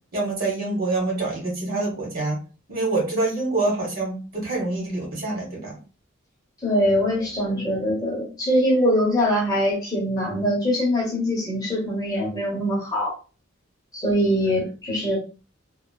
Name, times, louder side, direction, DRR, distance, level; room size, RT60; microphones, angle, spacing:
voice 1, 0.1-2.4 2.7-5.8, right 2 dB, 45° right, -1 dB, 1.1 m, -26 dB
voice 2, 6.6-13.1 13.9-15.2, equal, 20° left, -4 dB, 0.8 m, -23 dB
3.0 x 2.0 x 2.2 m, 0.35 s
head